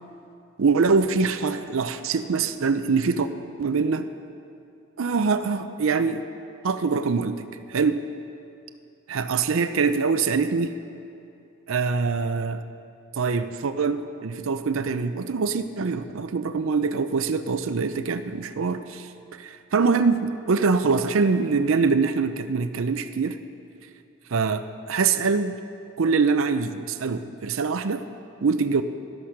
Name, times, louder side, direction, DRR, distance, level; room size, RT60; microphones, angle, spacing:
voice 1, 0.6-3.3 3.6-4.1 5.0-6.2 6.6-8.0 9.1-10.7 11.7-12.6 13.2-19.1 19.4-23.4 24.3-25.5 26.0-28.0 28.4-28.8, right 4 dB, 65° right, 9 dB, 0.5 m, -24 dB
12.5 x 11.5 x 5.8 m, 2.6 s
head